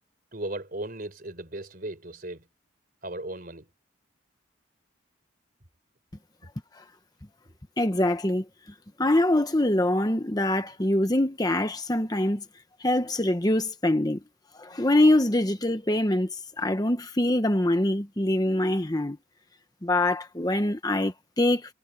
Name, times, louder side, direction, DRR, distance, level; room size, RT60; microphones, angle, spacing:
voice 1, 0.3-2.4 3.0-3.7, right 1 dB, 45° right, 4.3 m, -36 dB
voice 2, 7.8-8.4 9.0-12.4 12.8-14.2 14.5-19.2 19.8-21.7, left 1 dB, 20° left, 1.0 m, -24 dB
head